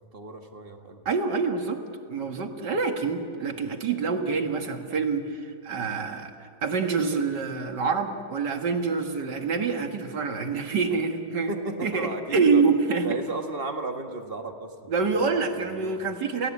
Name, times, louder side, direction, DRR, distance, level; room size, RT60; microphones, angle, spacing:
voice 1, 0.0-1.0 3.5-3.8 11.5-12.6 13.0-16.0, right 2 dB, 30° right, 5 dB, 1.8 m, -35 dB
voice 2, 1.1-1.8 2.1-11.5 11.8-13.1 14.9-16.5, right 4 dB, 65° right, 5 dB, 2.3 m, -26 dB
28.5 x 17.5 x 8.5 m, 2.6 s
omnidirectional pair, 2.0 m